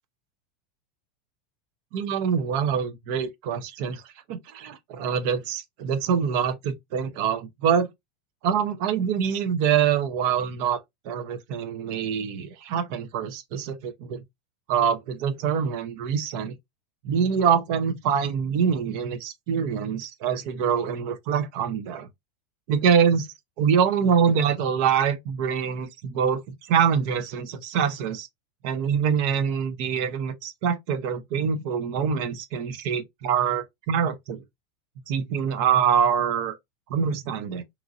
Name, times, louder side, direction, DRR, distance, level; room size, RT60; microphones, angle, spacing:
voice 1, 1.9-4.0 4.3-7.9 8.4-10.8 11.1-14.2 14.7-16.5 17.0-22.1 22.7-23.3 23.6-28.3 28.6-34.4 35.1-36.6 36.9-37.6, right 7 dB, 60° right, 0.5 m, -25 dB
2.9 x 2.5 x 2.5 m
supercardioid pair, 125°, 0 cm